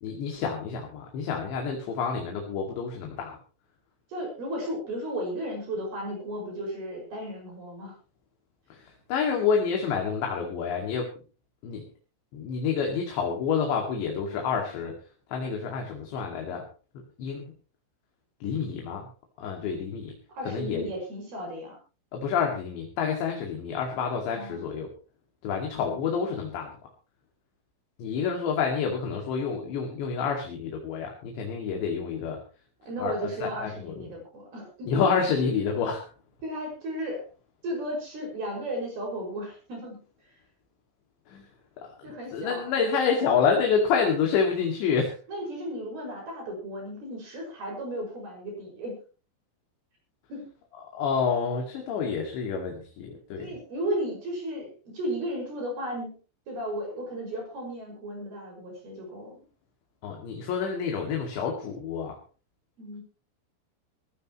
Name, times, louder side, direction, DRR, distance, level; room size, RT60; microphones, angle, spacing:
voice 1, 0.0-3.4 8.7-11.1 11.6-11.8 12.3-15.0 15.3-16.6 17.2-17.5 18.4-19.1 19.4-20.1 20.5-20.9 22.1-24.9 25.4-26.7 28.0-32.4 33.0-34.1 34.9-36.1 41.3-41.5 41.8-45.2 50.9-53.5 60.0-62.2, left 6 dB, 65° left, 2 dB, 4.4 m, -28 dB
voice 2, 4.1-7.9 20.3-21.8 24.3-24.6 25.9-26.0 32.8-35.0 36.4-37.2 37.6-40.0 42.0-42.7 45.3-49.0 50.3-50.5 53.4-56.2 56.5-59.4 62.8-63.0, equal, 50° right, 0 dB, 7.6 m, -34 dB
21.5 x 15.5 x 3.1 m, 0.36 s
omnidirectional pair, 5.6 m